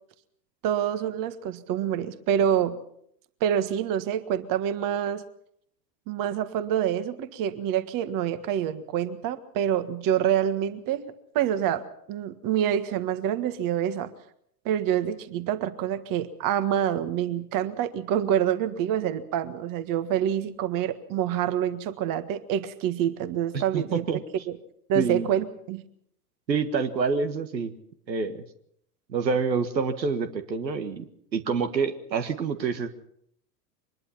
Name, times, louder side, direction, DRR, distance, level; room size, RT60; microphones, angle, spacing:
voice 1, 0.6-2.8 3.4-5.2 6.1-14.1 14.7-24.0 24.5-24.6 24.9-25.8, right 10 dB, 40° right, 12 dB, 1.7 m, -27 dB
voice 2, 23.5-24.2 25.0-25.3 26.5-27.7 28.1-28.4 29.1-31.1 31.3-32.9, right 5 dB, 85° right, 9 dB, 1.7 m, -27 dB
23.5 x 20.5 x 5.8 m, 0.70 s
hypercardioid pair, 95°, 50 cm